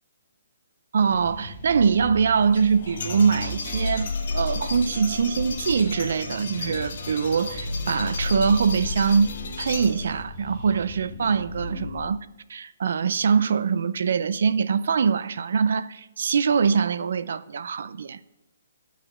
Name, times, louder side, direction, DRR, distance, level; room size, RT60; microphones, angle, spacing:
voice 1, 0.9-18.2, right 6 dB, 60° right, 0.5 m, -23 dB
sound 1, 1.0-12.1, left 2 dB, 20° left, 1.9 m, -34 dB
sound 2, 2.4-10.2, left 4 dB, 50° left, 1.7 m, -36 dB
12.0 x 5.1 x 7.5 m
hypercardioid pair, 165°, 0 cm